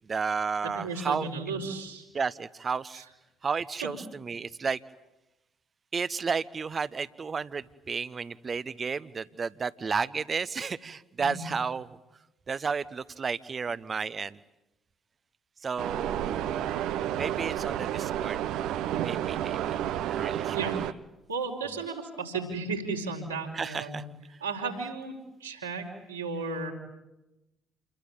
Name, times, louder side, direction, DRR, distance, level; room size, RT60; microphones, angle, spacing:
voice 1, 0.1-1.3 2.1-3.0 3.4-4.8 5.9-12.0 12.5-14.4 15.6-16.7 17.1-18.4 19.0-19.8 20.1-20.7 23.5-24.0, right 5 dB, 35° right, 16 dB, 1.0 m, -32 dB
voice 2, 0.7-2.0 2.9-3.0 3.8-3.9 11.2-11.5 20.5-20.7 21.3-24.0 24.4-25.1 25.4-26.7, right 4 dB, 85° right, 0 dB, 4.5 m, -34 dB
sound 1, 15.8-20.9, right 11 dB, 60° right, 0.9 m, -31 dB
29.0 x 22.5 x 8.8 m, 0.93 s
figure-of-eight pair, 50°, 0 cm